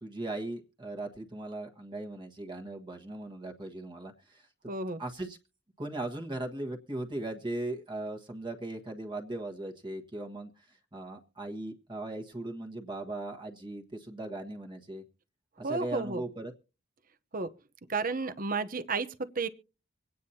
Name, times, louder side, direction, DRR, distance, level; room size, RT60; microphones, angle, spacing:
voice 1, 0.0-4.5 5.0-5.4 5.8-15.0 15.6-16.5, right 2 dB, 25° right, 1.4 m, -38 dB
voice 2, 4.7-5.0 15.6-16.2 17.3-17.5 17.9-19.5, right 4 dB, 45° right, 0.9 m, -32 dB
25.0 x 9.4 x 2.8 m
head